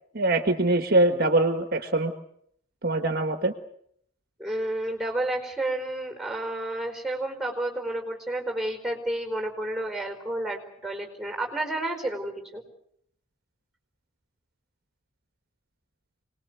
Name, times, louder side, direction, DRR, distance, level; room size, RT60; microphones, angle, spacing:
voice 1, 0.1-2.1 2.8-3.5, right 2 dB, 45° right, 7 dB, 1.5 m, -23 dB
voice 2, 4.4-12.6, right 1 dB, ahead, 3 dB, 4.7 m, -31 dB
26.5 x 20.5 x 8.1 m, 0.70 s
head